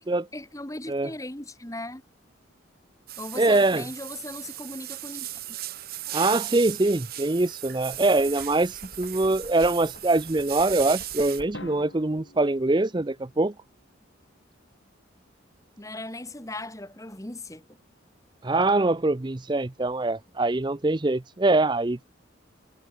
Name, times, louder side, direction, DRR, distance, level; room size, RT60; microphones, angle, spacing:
voice 1, 0.3-2.0 3.2-5.6 15.8-17.7, left 2 dB, 15° left, 1.8 m, -38 dB
sound 1, 3.1-11.4, right 14 dB, 50° right, 1.3 m, -37 dB
voice 2, 3.4-3.9 6.1-13.5 18.4-22.0, right 2 dB, 20° right, 0.5 m, -23 dB
Knock, 7.8-11.9, left 1 dB, 40° left, 3.3 m, -49 dB
Drum, 11.5-13.6, left 1 dB, 75° left, 7.2 m, -46 dB
head